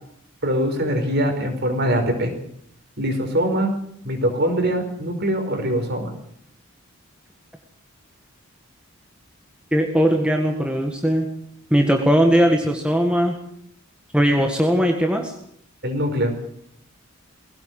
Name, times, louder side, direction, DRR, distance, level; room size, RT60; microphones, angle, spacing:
voice 1, 0.4-2.3 3.0-3.7 4.0-6.1 15.8-16.3, equal, 45° right, 5 dB, 5.0 m, -22 dB
voice 2, 9.7-11.3 11.7-13.3 14.1-15.3, equal, 5° right, 3 dB, 1.8 m, -19 dB
20.5 x 17.5 x 7.7 m, 0.68 s
head